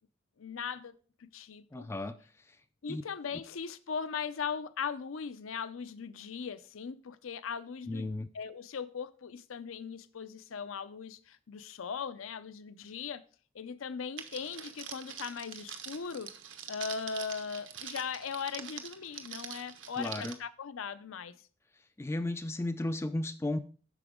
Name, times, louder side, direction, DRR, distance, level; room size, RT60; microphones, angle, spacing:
voice 1, 0.4-0.9 1.2-1.9 2.8-13.2 13.5-16.3 16.7-21.4, left 6 dB, 70° left, 14 dB, 0.5 m, -39 dB
voice 2, 1.7-2.6 2.9-3.0 7.9-8.3 20.0-20.4 22.0-23.6, left 1 dB, 15° left, 10 dB, 0.3 m, -34 dB
Crackle, 14.2-20.3, right 8 dB, 65° right, 1.0 m, -44 dB
8.3 x 6.0 x 3.6 m, 0.41 s
head